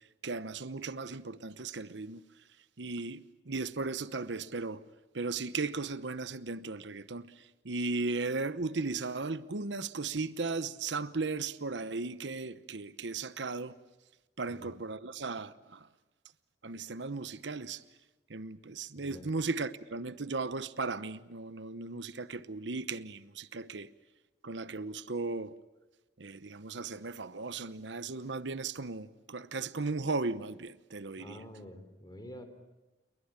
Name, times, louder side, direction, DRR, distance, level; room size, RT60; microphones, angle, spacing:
voice 1, 0.2-2.2 2.8-4.8 5.1-13.7 14.4-15.9 16.6-17.8 18.3-23.9 24.4-25.5 26.2-31.4, right 3 dB, 80° right, 1.0 m, -36 dB
voice 2, 19.0-19.3 31.2-32.4, left 1 dB, 20° left, 3.7 m, -48 dB
29.0 x 22.0 x 8.9 m
head